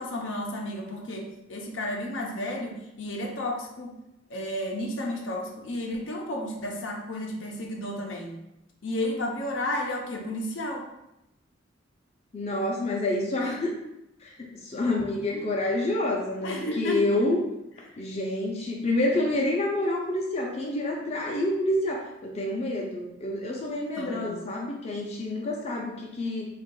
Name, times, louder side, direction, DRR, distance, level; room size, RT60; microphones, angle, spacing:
voice 1, 0.0-4.0 4.3-8.4 8.8-10.8 13.4-13.6 14.7-14.8 15.3-15.4 16.4-17.0 24.0-24.4, left 1 dB, 80° left, 1 dB, 0.7 m, -32 dB
voice 2, 12.3-13.8 14.2-17.5 18.0-26.5, left 1 dB, 35° left, -2 dB, 0.5 m, -28 dB
3.5 x 2.4 x 3.8 m, 0.87 s
head